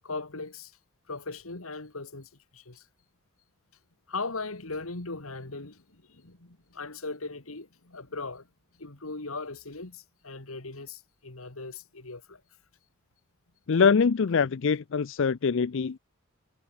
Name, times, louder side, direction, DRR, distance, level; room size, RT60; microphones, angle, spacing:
voice 1, 0.0-0.7 1.1-2.8 4.1-8.5 8.8-12.4, left 3 dB, 90° left, 2.5 m, -39 dB
voice 2, 13.7-16.0, left 5 dB, 60° left, 0.5 m, -23 dB
head